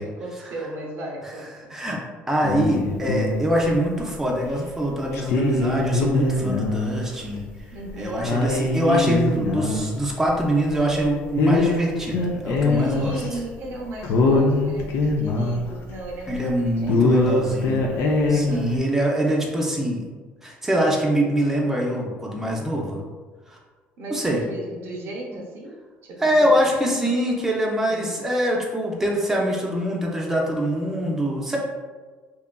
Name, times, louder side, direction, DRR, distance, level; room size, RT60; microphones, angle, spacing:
voice 1, 0.0-1.7 7.7-8.4 12.7-17.7 18.3-18.7 24.0-25.8 26.0-26.5 26.8-27.1 27.9-28.1 31.5-31.6, right 1 dB, 60° right, -1 dB, 0.6 m, -35 dB
voice 2, 2.3-7.5 8.0-13.1 16.3-17.8 18.3-20.0 20.4-23.0 23.5-23.6 24.1-24.4 26.2-31.6, right 1 dB, 10° right, -2 dB, 0.5 m, -24 dB
sound 1, 2.4-4.0 4.5-4.6 5.1-7.0 7.3-7.4 7.9-8.0 8.2-11.0 11.4-13.4 13.7-13.8 14.0-16.5 16.8-18.8, left 2 dB, 70° left, 0.4 m, -22 dB
2.8 x 2.3 x 2.2 m, 1.4 s
supercardioid pair, 95°, 4 cm